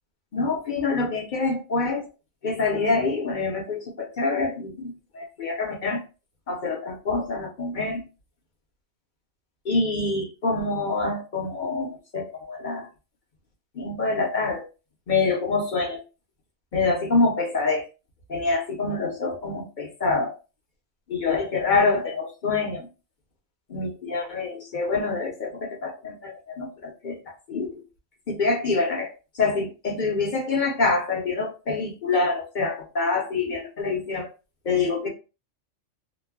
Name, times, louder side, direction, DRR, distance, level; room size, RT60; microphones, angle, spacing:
voice 1, 0.3-2.0 2.4-6.0 6.5-8.0 9.6-12.9 13.7-14.7 15.1-16.0 16.7-17.8 18.3-20.4 21.1-22.9 23.7-27.2 27.5-27.8 28.3-34.3 34.6-35.1, left 3 dB, 50° left, 0 dB, 0.7 m, -26 dB
3.0 x 2.0 x 2.2 m, 0.31 s
omnidirectional pair, 1.3 m